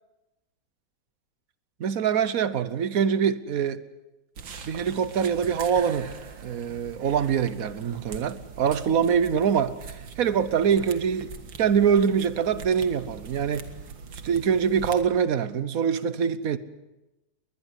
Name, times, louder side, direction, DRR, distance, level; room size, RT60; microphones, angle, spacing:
voice 1, 1.8-3.8 4.7-6.1 6.4-9.7 10.2-11.3 11.6-13.7 14.2-16.6, right 7 dB, 55° right, 1.3 m, -24 dB
sound 1, 4.4-15.0, right 5 dB, 80° right, 2.3 m, -42 dB
21.0 x 20.5 x 8.2 m
omnidirectional pair, 2.0 m